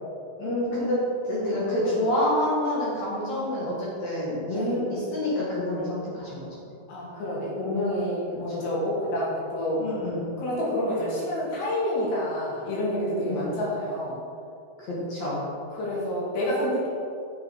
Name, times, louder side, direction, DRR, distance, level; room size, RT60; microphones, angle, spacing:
voice 1, 0.4-1.0 1.2-6.5 9.8-10.3 13.2-13.5 14.8-15.4, left 1 dB, 50° left, -7 dB, 2.6 m, -27 dB
voice 2, 6.9-9.8 10.4-14.2 15.8-16.9, left 1 dB, 80° left, -6 dB, 4.3 m, -28 dB
7.8 x 7.0 x 4.5 m, 2.5 s
omnidirectional pair, 4.8 m